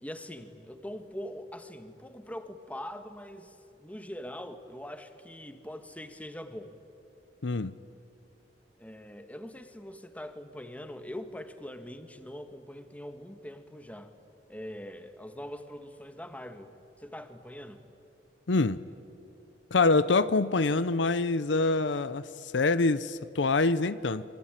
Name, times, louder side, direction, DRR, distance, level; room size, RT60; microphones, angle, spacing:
voice 1, 0.0-6.7 8.8-14.1 14.5-16.7 17.0-17.8, left 1 dB, 10° left, 1.6 m, -42 dB
voice 2, 7.4-7.7 18.5-18.8 19.7-24.2, left 3 dB, 75° left, 0.7 m, -25 dB
27.0 x 23.5 x 9.1 m
head